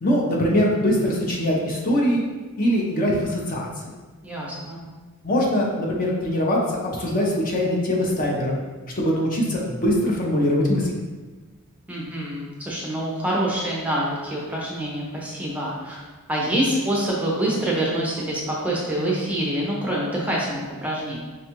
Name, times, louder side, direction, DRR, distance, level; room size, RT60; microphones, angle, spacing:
voice 1, 0.0-2.2 2.6-3.9 5.2-8.6 9.0-10.9, equal, 40° left, -2 dB, 0.6 m, -22 dB
voice 2, 4.2-4.8 11.9-16.0 16.3-21.2, right 1 dB, 5° right, -4 dB, 0.5 m, -26 dB
5.1 x 2.3 x 2.9 m, 1.3 s
head